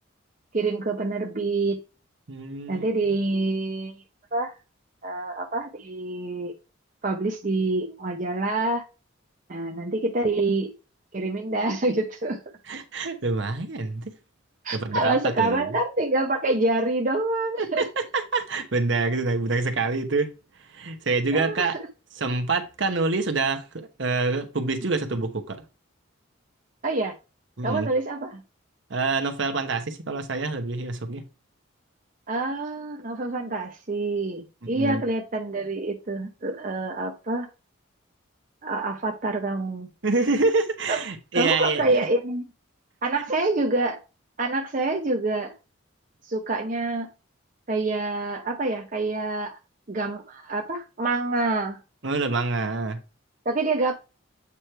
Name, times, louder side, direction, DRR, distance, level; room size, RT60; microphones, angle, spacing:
voice 1, 0.5-1.8 2.7-4.0 4.3-4.5 5.0-6.5 7.0-8.9 9.5-10.7 11.1-12.4 14.6-17.9 21.3-21.7 26.8-27.1 27.6-28.4 32.3-37.5 38.6-39.9 40.9-41.0 41.3-42.4 43.0-44.0 44.4-45.5 46.3-47.1 47.7-49.6 49.9-51.8 53.5-53.9, right 2 dB, 40° right, 0.7 m, -26 dB
voice 2, 2.3-3.0 12.7-14.1 14.7-15.7 17.6-20.3 20.6-21.8 22.2-25.6 27.6-27.9 28.9-31.2 34.6-35.0 40.0-42.1 52.0-53.0, right 3 dB, 60° right, 1.0 m, -26 dB
8.3 x 3.1 x 4.4 m
head